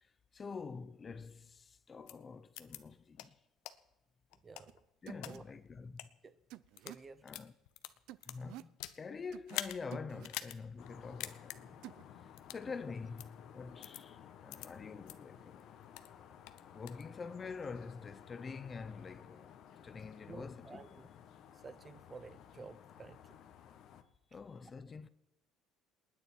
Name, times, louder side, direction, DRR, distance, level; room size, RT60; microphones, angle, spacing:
voice 1, 0.0-3.3 5.0-6.1 7.2-7.5 8.3-11.7 12.2-15.7 16.7-19.5 19.8-21.0 24.3-25.1, left 5 dB, 20° left, 0.6 m, -46 dB
sound 1, 2.1-2.2 2.6-2.8 3.2-3.3 3.7-3.8 4.3-5.3 5.9-6.1 6.6-7.0 7.3-9.0 9.5-9.8 10.2-10.6 10.9-11.0 11.2-11.6 12.4-12.6 13.2-13.3 13.8-14.0 14.5-14.7 15.1-15.2 15.6-16.1 16.5-17.0, left 16 dB, 85° left, 0.9 m, -44 dB
voice 2, 4.4-4.7 5.2-5.4 6.2-6.4 6.8-7.3 20.3-21.1 21.5-23.4, right 4 dB, 20° right, 0.6 m, -52 dB
sound 2, 4.7-4.8 5.1-5.4 6.5-7.0 8.1-8.7 9.3-9.6 9.9-10.3 11.8-12.0, right 15 dB, 65° right, 0.5 m, -50 dB
sound 3, 10.8-24.0, left 9 dB, 50° left, 1.3 m, -56 dB
28.5 x 9.8 x 4.5 m
cardioid pair, 160°, 0 cm